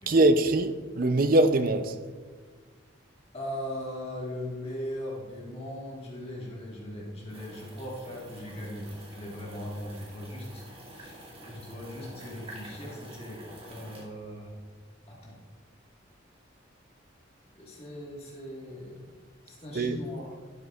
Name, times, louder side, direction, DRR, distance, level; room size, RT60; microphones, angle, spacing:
voice 1, 0.1-1.9 19.7-20.0, right 2 dB, 45° right, 0.5 m, -22 dB
voice 2, 3.3-10.6 10.9-14.6 15.1-15.4 17.5-19.1 19.4-20.3, equal, 30° left, 1.6 m, -39 dB
sound 1, 7.3-14.0, right 1 dB, 30° right, 2.3 m, -48 dB
11.5 x 9.5 x 2.4 m
head